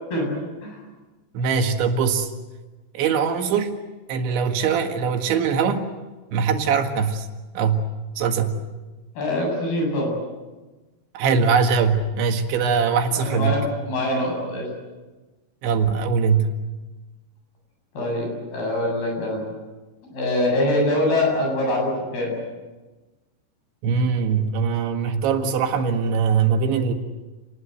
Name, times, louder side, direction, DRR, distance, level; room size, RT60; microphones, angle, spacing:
voice 1, 1.3-2.3 2.9-3.7 4.1-5.9 6.3-7.3 7.6-7.8 8.2-8.5 11.2-13.5 15.6-16.5 23.8-26.9, right 6 dB, 85° right, 5 dB, 4.1 m, -21 dB
voice 2, 9.2-10.1 13.1-14.7 17.9-19.5 20.1-22.3, left 1 dB, 60° left, 1 dB, 9.8 m, -24 dB
29.5 x 20.0 x 8.1 m, 1.2 s
omnidirectional pair, 5.1 m